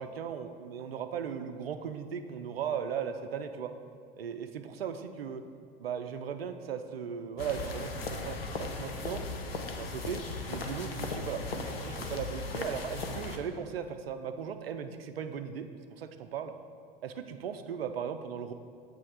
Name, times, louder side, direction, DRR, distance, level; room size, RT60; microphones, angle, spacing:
voice 1, 0.0-3.7 4.2-5.4 5.8-9.2 9.7-16.5 17.0-18.5, right 7 dB, 90° right, 9 dB, 0.5 m, -37 dB
sound 1, 7.4-13.4, left 3 dB, 90° left, 0.7 m, -37 dB
7.6 x 3.2 x 5.5 m, 2.3 s
hypercardioid pair, 90°, 29 cm